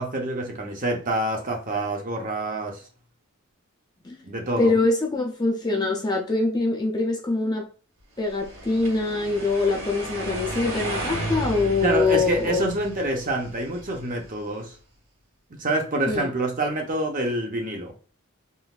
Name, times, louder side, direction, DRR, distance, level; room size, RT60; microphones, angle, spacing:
voice 1, 0.0-2.8 4.2-4.7 11.8-14.7 15.5-17.9, right 1 dB, 35° right, 0.8 m, -27 dB
voice 2, 4.6-7.7 8.2-12.7 16.1-16.3, left 3 dB, 20° left, 0.5 m, -24 dB
sound 1, 8.3-14.4, right 1 dB, 65° right, 1.7 m, -34 dB
3.9 x 2.6 x 2.4 m
head